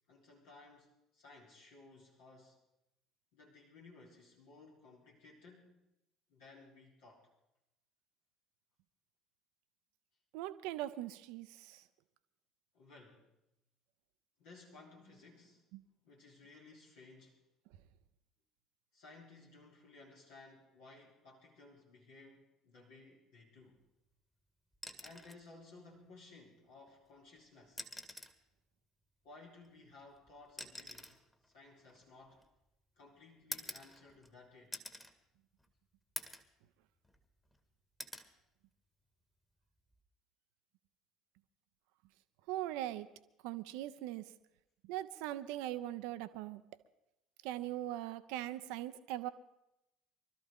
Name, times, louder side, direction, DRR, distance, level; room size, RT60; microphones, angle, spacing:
voice 1, 0.1-2.6 3.3-5.8 6.3-7.3 12.7-13.3 14.4-17.4 18.9-23.8 25.0-27.9 29.2-32.4 33.0-34.8, left 3 dB, 70° left, -3 dB, 3.3 m, -58 dB
voice 2, 10.3-11.8 15.7-15.8 42.5-43.1 43.4-44.3 44.9-46.6 47.4-49.3, right 14 dB, 65° right, 12 dB, 0.7 m, -40 dB
sound 1, 24.7-25.5 26.9-27.0 27.7-28.4 29.6-32.7 33.5-34.3 34.7-35.1 35.6-35.7 36.2-36.5 37.0-37.6 38.0-38.3 39.8-40.0, left 1 dB, 10° left, 1.9 m, -47 dB
24.0 x 13.0 x 3.7 m, 0.87 s
hypercardioid pair, 60°, 0 cm